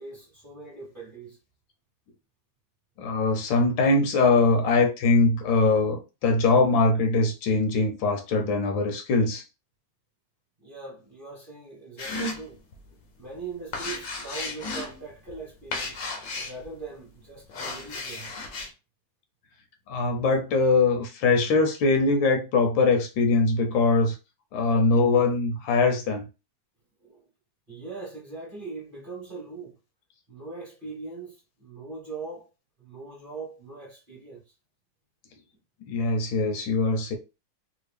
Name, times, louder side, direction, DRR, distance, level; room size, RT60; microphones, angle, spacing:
voice 1, 0.0-1.4 10.6-12.6 13.2-16.0 16.3-18.3 27.0-27.2 27.7-29.7 30.3-32.5 32.8-34.4, right 4 dB, 30° right, 1.1 m, -41 dB
voice 2, 3.0-9.4 19.9-24.2 24.5-26.2 35.9-37.1, left 3 dB, 80° left, 1.5 m, -22 dB
sound 1, 12.0-12.9 13.2-16.8 17.4-18.7, left 3 dB, 60° left, 0.9 m, -34 dB
3.5 x 2.5 x 3.3 m
omnidirectional pair, 2.0 m